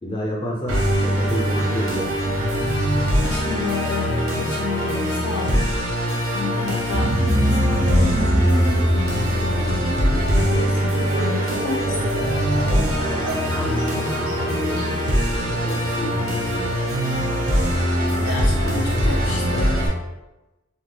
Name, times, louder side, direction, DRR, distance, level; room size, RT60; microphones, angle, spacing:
voice 1, 0.0-2.1 12.6-16.7, equal, 20° left, -4 dB, 0.4 m, -31 dB
Musical instrument, 0.7-19.9, equal, 85° right, 0.8 m, -22 dB
voice 2, 3.2-10.0 10.3-12.0 18.2-19.8, left 4 dB, 90° left, -2 dB, 0.4 m, -31 dB
sound 1, 6.9-19.6, right 1 dB, 60° right, 0.5 m, -27 dB
2.7 x 2.2 x 3.2 m, 1.0 s
head